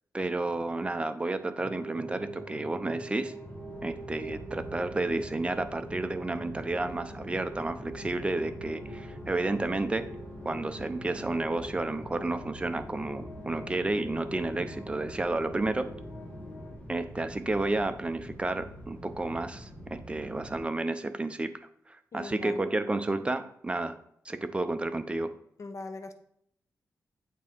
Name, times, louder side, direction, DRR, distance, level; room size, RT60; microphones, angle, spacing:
voice 1, 0.1-3.3 3.8-10.1 10.4-15.9 16.9-21.5 21.9-24.0 24.2-25.3, right 2 dB, 15° right, 9 dB, 0.6 m, -31 dB
sound 1, 1.6-16.8, right 1 dB, 5° left, 2.4 m, -44 dB
sound 2, 3.4-20.6, equal, 20° left, 1.5 m, -45 dB
voice 2, 22.1-22.7 25.6-26.1, left 3 dB, 50° left, 7 dB, 0.8 m, -41 dB
8.3 x 3.6 x 4.5 m, 0.71 s
cardioid pair, 100°, 6 cm